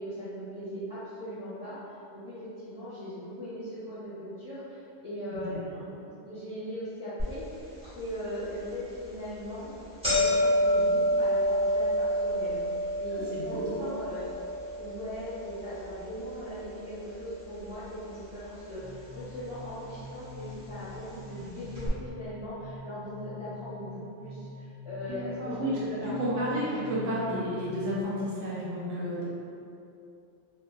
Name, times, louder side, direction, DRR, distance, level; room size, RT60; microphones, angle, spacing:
voice 1, 0.0-6.0 6.2-7.6 7.9-9.7 10.0-14.3 14.7-26.8, equal, 30° left, -12 dB, 0.7 m, -39 dB
sound 1, 7.2-7.3 7.8-7.9 8.8-9.0 9.3-9.4 9.6-17.9 18.1-18.9 19.7-19.8 20.7-20.8 21.1-21.2 21.7-21.9, equal, 5° right, 1.4 m, -29 dB
voice 2, 13.1-13.9 25.0-29.2, equal, 80° right, -8 dB, 1.3 m, -32 dB
sound 2, 18.8-28.0, left 3 dB, 50° right, 0.8 m, -45 dB
3.4 x 2.8 x 2.6 m, 2.6 s
omnidirectional pair, 1.3 m